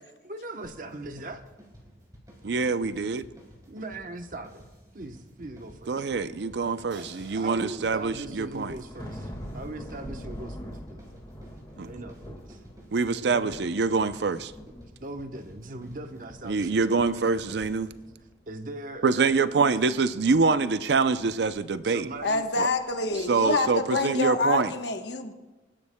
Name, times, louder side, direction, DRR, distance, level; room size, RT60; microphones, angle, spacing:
voice 1, 0.2-1.4 3.7-4.6 4.9-5.9 7.0-11.1 11.7-12.6 13.2-13.5 15.0-17.1 18.5-19.6 21.8-22.5, right 2 dB, 45° right, 0.9 m, -40 dB
sound 1, 0.6-18.1, equal, 20° right, 3.9 m, -52 dB
voice 2, 2.4-3.2 5.9-8.7 11.8-11.9 12.9-14.5 16.4-17.9 19.0-22.1 22.6-22.7 23.3-24.7, right 4 dB, 65° right, 0.5 m, -25 dB
sound 2, 6.4-14.1 14.4-16.0 16.3-18.8 19.2-24.0 24.2-24.5, equal, 20° left, 1.7 m, -45 dB
Crash cymbal, 6.9-8.9, right 4 dB, 80° right, 5.0 m, -54 dB
voice 3, 22.2-25.3, left 3 dB, 65° left, 1.0 m, -27 dB
25.0 x 12.5 x 2.2 m
head